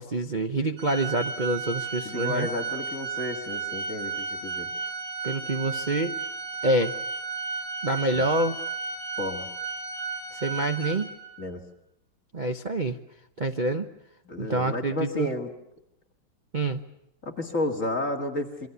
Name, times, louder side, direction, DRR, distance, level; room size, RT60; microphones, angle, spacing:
voice 1, 0.0-2.5 5.2-6.2 6.6-7.0 7.8-8.6 10.4-11.1 12.3-13.0 13.4-13.9 14.4-15.3 16.5-16.8, right 2 dB, 45° right, 6 dB, 0.5 m, -26 dB
Organ, 0.8-11.4, right 5 dB, 75° right, 7.3 m, -34 dB
voice 2, 2.0-4.7 8.1-8.2 9.2-9.5 11.4-11.6 14.3-15.5 17.2-18.7, left 2 dB, 40° left, 2 dB, 2.3 m, -31 dB
27.5 x 24.0 x 6.9 m, 0.79 s
omnidirectional pair, 2.4 m